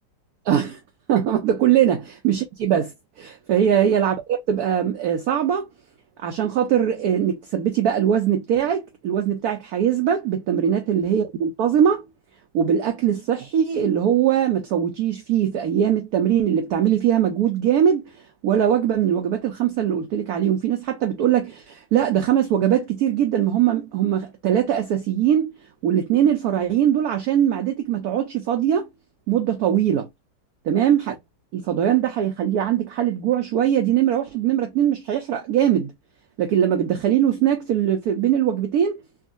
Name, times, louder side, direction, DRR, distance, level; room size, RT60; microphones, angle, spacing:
voice 1, 0.5-0.8 1.1-5.7 6.2-12.0 12.5-18.1 18.4-25.6 25.8-28.9 29.3-30.1 30.7-31.1 31.5-35.9 36.4-39.0, right 9 dB, 70° right, 1.0 m, -21 dB
3.5 x 2.4 x 2.3 m
omnidirectional pair, 2.0 m